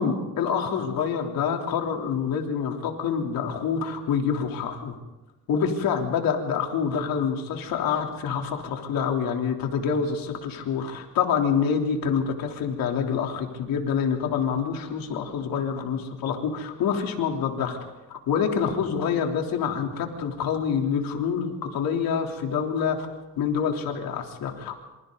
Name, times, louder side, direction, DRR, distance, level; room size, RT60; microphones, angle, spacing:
voice 1, 0.0-5.0 5.5-17.8 18.1-23.1 23.4-24.8, left 6 dB, 80° left, 2 dB, 3.5 m, -26 dB
27.5 x 27.0 x 4.0 m, 1.1 s
cardioid pair, 105°, 34 cm